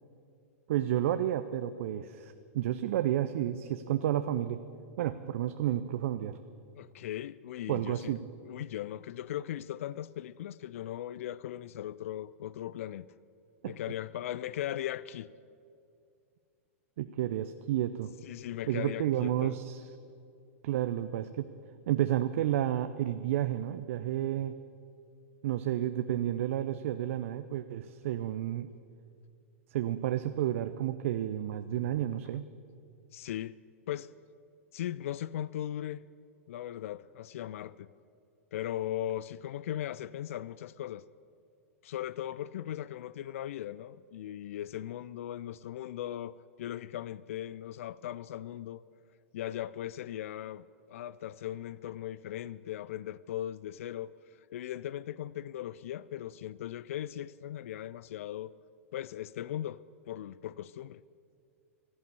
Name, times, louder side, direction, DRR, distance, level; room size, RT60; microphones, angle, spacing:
voice 1, 0.7-4.6 5.0-6.4 7.7-8.2 13.6-13.8 17.0-18.1 18.7-19.9 20.6-21.5 21.9-24.6 25.4-28.7 29.7-32.5, right 12 dB, 60° right, 0.6 m, -31 dB
voice 2, 6.8-8.1 8.4-13.1 13.7-15.3 18.2-19.6 33.1-33.6 33.9-34.1 34.7-36.1 36.5-37.9 38.5-41.0 41.8-48.8 49.3-54.1 54.5-58.5 58.9-61.0, left 12 dB, 65° left, 0.4 m, -38 dB
16.0 x 12.0 x 7.0 m
hypercardioid pair, 105°, 8 cm